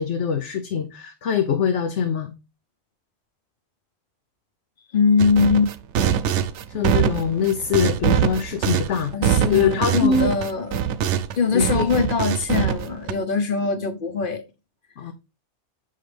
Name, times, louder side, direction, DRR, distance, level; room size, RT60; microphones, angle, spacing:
voice 1, 0.0-2.3 6.7-10.4 11.5-11.9 15.0-15.1, left 6 dB, 85° left, 1.1 m, -23 dB
voice 2, 4.9-5.7 9.1-10.8 11.3-14.4, left 5 dB, 50° left, 1.0 m, -22 dB
sound 1, 5.2-11.4 11.6-13.1, right 8 dB, 80° right, 0.9 m, -23 dB
7.5 x 5.7 x 3.3 m
omnidirectional pair, 1.2 m